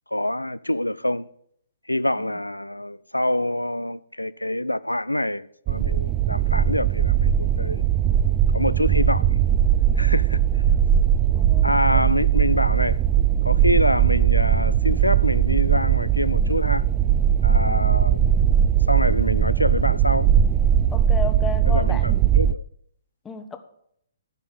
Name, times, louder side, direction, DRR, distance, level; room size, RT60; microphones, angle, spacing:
voice 1, 0.1-1.3 1.9-7.8 8.5-9.4 10.0-10.4 11.6-13.0 13.4-16.8 17.4-18.2 18.9-20.3 21.7-22.6, left 1 dB, 85° left, 0.3 m, -26 dB
sound 1, 5.7-22.5, right 9 dB, 20° right, 0.4 m, -19 dB
voice 2, 11.3-12.1 20.9-22.4 23.2-23.6, left 6 dB, 10° left, 0.9 m, -34 dB
10.5 x 5.2 x 8.2 m
figure-of-eight pair, 130°, 0 cm